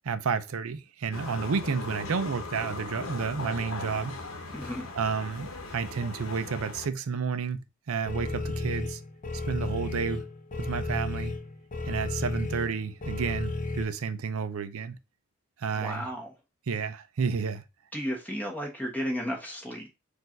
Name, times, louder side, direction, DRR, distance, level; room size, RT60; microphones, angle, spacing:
voice 1, 0.0-4.2 5.0-9.0 9.5-10.2 10.6-11.3 11.9-15.0 15.6-16.1 16.7-17.6, right 5 dB, 80° right, 0.5 m, -31 dB
sound 1, 1.1-6.9, left 3 dB, 75° left, 0.9 m, -39 dB
voice 2, 4.5-4.9 15.7-16.3 17.9-19.9, equal, 5° left, 1.3 m, -33 dB
sound 2, 8.1-13.8, left 2 dB, 35° left, 0.6 m, -33 dB
4.5 x 2.6 x 4.4 m
head